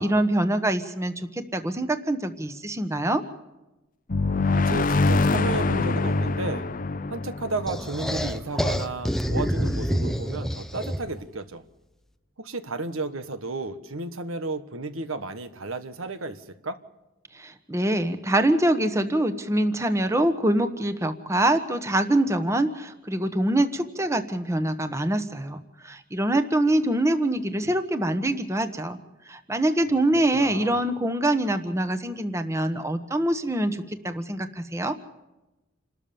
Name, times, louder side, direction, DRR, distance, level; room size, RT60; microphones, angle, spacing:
voice 1, 0.0-3.2 17.3-29.0 29.3-35.0, right 1 dB, 15° right, 9 dB, 1.2 m, -24 dB
sound 1, 4.1-8.7, left 3 dB, 40° left, 0.6 m, -24 dB
voice 2, 4.5-6.7 7.1-11.6 12.4-16.8 30.3-30.8, right 3 dB, 85° right, 10 dB, 1.5 m, -33 dB
sound 2, 7.7-11.2, equal, ahead, 0.7 m, -27 dB
28.5 x 13.5 x 7.0 m, 1.0 s
head